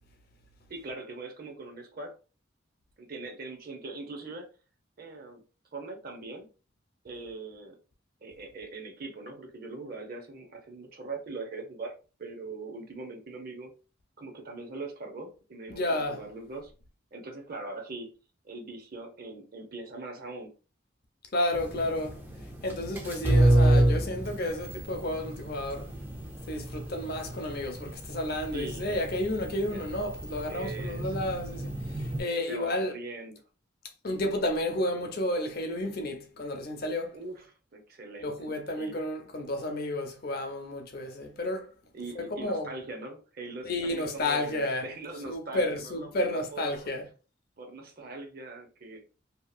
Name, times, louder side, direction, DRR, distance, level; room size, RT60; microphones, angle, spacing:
voice 1, 0.7-2.1 3.0-4.5 5.0-5.4 5.7-6.5 7.0-7.8 8.2-11.9 12.2-13.7 14.2-16.7 17.1-18.1 18.4-20.5 28.5-29.0 29.7-29.8 30.5-31.2 32.5-33.4 37.1-37.5 37.7-38.5 38.8-39.0 41.9-46.9 47.6-49.0, right 3 dB, 50° right, 0.7 m, -41 dB
voice 2, 15.7-16.2 21.3-22.2 22.6-25.9 26.5-32.9 34.0-37.1 38.2-41.7 42.1-42.7 43.6-44.9 45.3-47.0, left 1 dB, 50° left, 0.6 m, -31 dB
sound 1, 21.5-32.2, right 1 dB, 10° right, 0.4 m, -29 dB
2.8 x 2.4 x 2.4 m
head